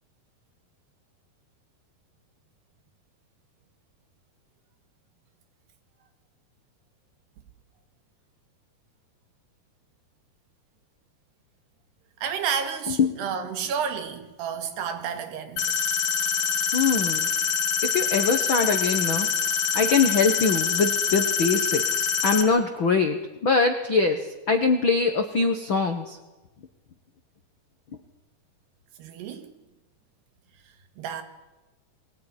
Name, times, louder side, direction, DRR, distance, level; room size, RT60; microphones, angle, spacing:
voice 1, 12.2-15.7 29.0-29.5 30.6-31.2, right 7 dB, 90° right, 4.0 m, -31 dB
sound 1, 15.6-22.4, left 7 dB, 55° left, 2.7 m, -25 dB
voice 2, 16.7-17.3 17.8-19.3 19.7-26.2, left 4 dB, 75° left, 1.1 m, -23 dB
22.5 x 17.5 x 10.0 m
omnidirectional pair, 4.6 m